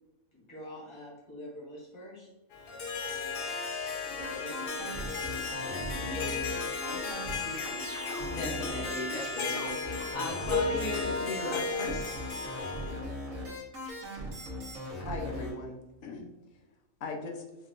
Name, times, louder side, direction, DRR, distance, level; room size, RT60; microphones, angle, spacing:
voice 1, 0.3-3.5 4.0-5.2 5.6-7.1 7.4-8.5, left 1 dB, 20° left, -6 dB, 1.3 m, -47 dB
Harp, 2.5-13.0, left 4 dB, 50° left, 0.8 m, -35 dB
sound 1, 4.2-15.5, equal, 75° right, 1.8 m, -39 dB
voice 2, 8.3-12.0, left 2 dB, 90° left, -2 dB, 1.3 m, -37 dB
voice 3, 15.0-16.6 17.0-17.4, left 3 dB, 70° left, 2 dB, 1.1 m, -40 dB
5.2 x 2.9 x 2.5 m, 1.0 s
omnidirectional pair, 1.4 m